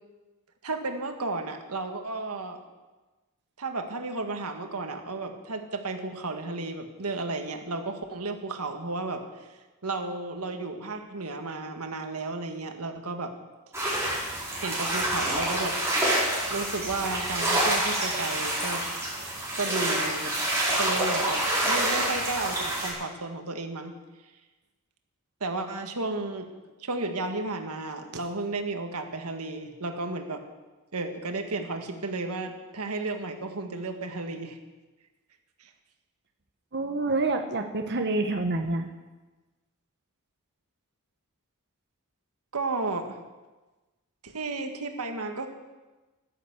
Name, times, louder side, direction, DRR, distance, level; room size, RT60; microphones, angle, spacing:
voice 1, 0.6-2.6 3.6-9.2 9.8-13.3 14.6-15.8 16.5-18.8 19.6-20.3 20.7-23.9 25.4-26.5 26.8-30.4 30.9-34.6 35.6-35.7 42.5-43.2 44.2-45.5, right 3 dB, 90° right, 5 dB, 1.7 m, -33 dB
sound 1, 13.7-22.9, right 1 dB, 10° right, 4.9 m, -27 dB
voice 2, 36.7-38.9, right 2 dB, 50° right, 4 dB, 1.0 m, -27 dB
14.0 x 10.5 x 8.2 m, 1.2 s
head